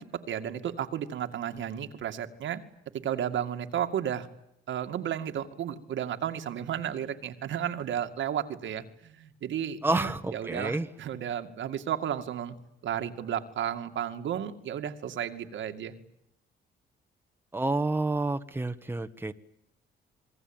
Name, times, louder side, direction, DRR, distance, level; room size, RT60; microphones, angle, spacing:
voice 1, 0.0-2.6 2.9-4.3 4.7-12.6 12.8-16.0, right 9 dB, 70° right, 2.4 m, -33 dB
voice 2, 9.8-10.9 17.5-19.3, right 2 dB, 10° right, 1.4 m, -29 dB
28.0 x 21.0 x 9.1 m
cardioid pair, 90°, 20 cm